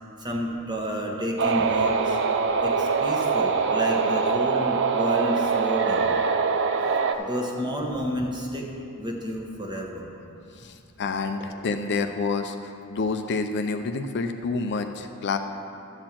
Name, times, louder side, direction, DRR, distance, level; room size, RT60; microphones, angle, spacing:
voice 1, 0.2-2.2 2.6-6.2 7.2-8.7 9.0-10.1, equal, 20° right, 0 dB, 1.1 m, -30 dB
sound 1, 1.4-7.1, right 5 dB, 55° right, 0.5 m, -23 dB
voice 2, 10.6-15.4, left 4 dB, 50° left, 7 dB, 0.5 m, -28 dB
12.5 x 4.4 x 7.4 m, 2.7 s
head